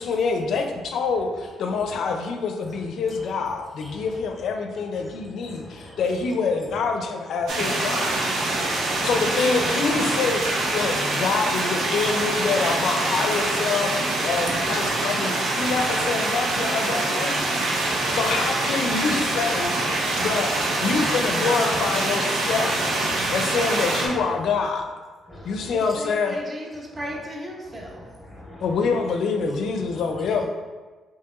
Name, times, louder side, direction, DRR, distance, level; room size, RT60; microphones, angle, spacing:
voice 1, 0.0-8.2 9.0-17.6 17.9-22.8 23.2-24.9 25.4-26.4 28.6-30.5, left 4 dB, 70° left, 5 dB, 0.4 m, -26 dB
voice 2, 5.4-6.1 7.5-7.6 8.5-9.1 14.6-15.0 15.7-15.8 17.4-17.5 17.7-18.2 18.9-19.0 20.0-20.3 20.9-21.2 23.1-23.4 25.3-25.8 27.6-28.7, left 1 dB, ahead, -4 dB, 1.0 m, -43 dB
sound 1, 7.5-24.1, right 2 dB, 80° right, 0.7 m, -25 dB
voice 3, 25.7-28.0, equal, 30° right, -2 dB, 0.9 m, -35 dB
4.6 x 2.8 x 2.4 m, 1.4 s
cardioid pair, 90°, 0 cm